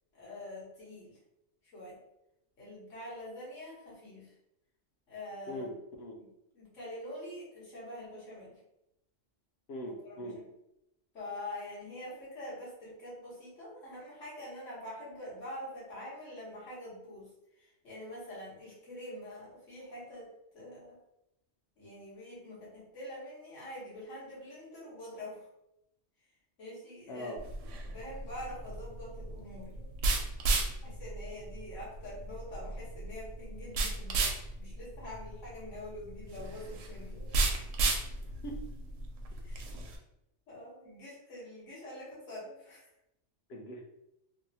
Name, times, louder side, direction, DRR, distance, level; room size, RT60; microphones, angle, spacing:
voice 1, 0.1-1.2 1.7-2.0 2.6-4.3 5.1-5.7 6.2-6.3 6.5-8.6 9.8-10.3 11.1-17.3 17.6-21.0 21.8-25.5 26.6-27.3 27.9-29.9 30.8-37.3 39.4-39.7 40.5-42.9, left 1 dB, 80° left, -7 dB, 1.6 m, -45 dB
voice 2, 9.7-10.4 27.1-27.4 38.2-38.5 43.5-43.8, equal, 65° left, 1 dB, 0.8 m, -41 dB
sound 1, 27.4-40.0, right 3 dB, 80° right, 0.9 m, -34 dB
3.4 x 2.0 x 2.7 m, 0.85 s
omnidirectional pair, 1.2 m